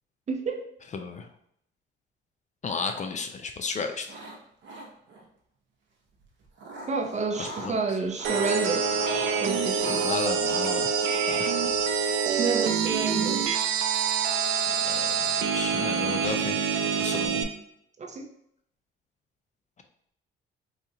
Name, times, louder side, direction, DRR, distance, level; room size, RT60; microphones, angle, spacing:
voice 1, 0.3-0.6 6.9-8.9 9.4-10.2 12.4-13.5 18.0-18.3, right 4 dB, 35° right, 4 dB, 0.5 m, -30 dB
voice 2, 0.9-1.3 2.6-4.1 7.4-7.8 9.9-10.9 11.3-11.5 14.8-15.2 15.5-16.6 16.9-17.4, left 4 dB, 35° left, 6 dB, 0.4 m, -33 dB
sound 1, 4.0-4.4 4.6-5.3 6.2-7.7 8.0-9.3 9.8-12.7, right 1 dB, 65° right, 0.8 m, -41 dB
sound 2, 8.2-17.4, right 6 dB, 85° right, 0.4 m, -26 dB
4.1 x 2.4 x 2.7 m, 0.72 s
cardioid pair, 90°, 20 cm